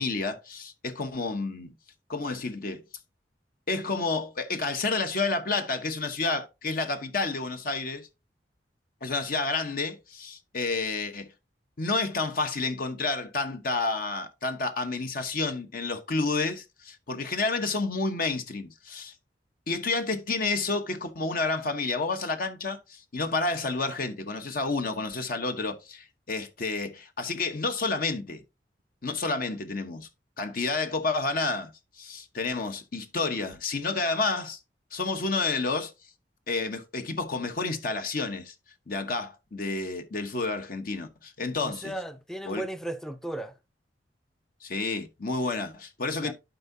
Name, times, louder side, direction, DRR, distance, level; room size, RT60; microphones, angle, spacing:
voice 1, 0.0-1.7 2.1-2.8 3.7-8.1 9.0-11.3 11.8-19.1 19.7-28.4 29.0-30.1 30.4-31.7 32.0-34.6 34.9-35.9 36.5-38.5 38.9-41.9 42.5-42.6 44.6-46.3, left 3 dB, 55° left, 0.9 m, -30 dB
voice 2, 41.6-43.5 46.2-46.3, right 1 dB, 5° left, 0.5 m, -35 dB
11.5 x 4.6 x 2.7 m
head